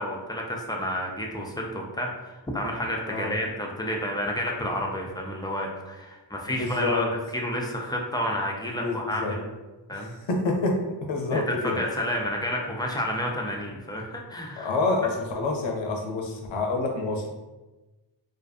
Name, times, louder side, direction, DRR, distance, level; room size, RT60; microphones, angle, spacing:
voice 1, 0.0-7.1 7.3-9.4 9.9-10.1 11.3-11.4 11.8-14.7, equal, 10° left, -1 dB, 0.3 m, -30 dB
voice 2, 6.5-7.1 8.7-9.4 9.9-11.8 14.6-17.3, left 3 dB, 85° left, 1 dB, 0.6 m, -28 dB
2.5 x 2.4 x 2.3 m, 1.1 s
wide cardioid pair, 65°, 45 cm